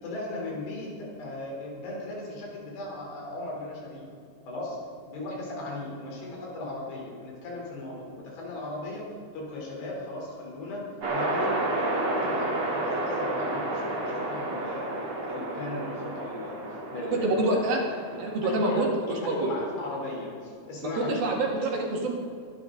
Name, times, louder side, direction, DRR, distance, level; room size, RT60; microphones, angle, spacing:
voice 1, 0.0-4.1 4.5-4.8 5.1-17.5 18.1-18.9 19.2-21.2, left 2 dB, 85° left, -3 dB, 5.9 m, -37 dB
sound 1, 11.0-18.4, right 2 dB, 40° right, 2.7 m, -31 dB
voice 2, 17.0-17.8 18.2-19.5 20.8-22.1, right 2 dB, 65° right, -1 dB, 3.7 m, -27 dB
23.5 x 11.0 x 4.0 m, 2.4 s
omnidirectional pair, 4.7 m